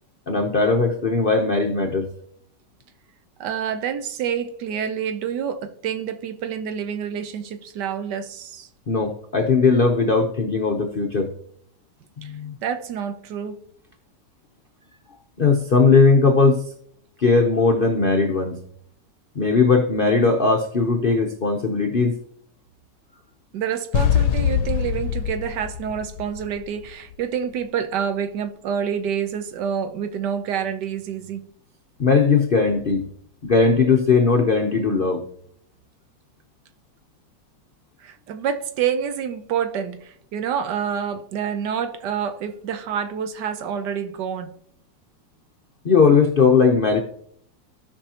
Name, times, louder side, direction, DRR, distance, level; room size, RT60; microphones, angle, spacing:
voice 1, 0.3-2.1 8.9-11.3 12.2-12.5 15.4-16.6 17.2-18.6 19.3-22.2 32.0-33.1 33.4-35.3 45.8-47.0, left 4 dB, 50° left, 0.6 m, -18 dB
voice 2, 3.4-8.7 12.2-12.3 12.6-13.6 23.5-31.4 38.0-44.5, right 8 dB, 75° right, 1.3 m, -27 dB
sound 1, 23.9-26.9, left 9 dB, 75° left, 1.2 m, -23 dB
16.0 x 5.5 x 2.9 m
omnidirectional pair, 1.9 m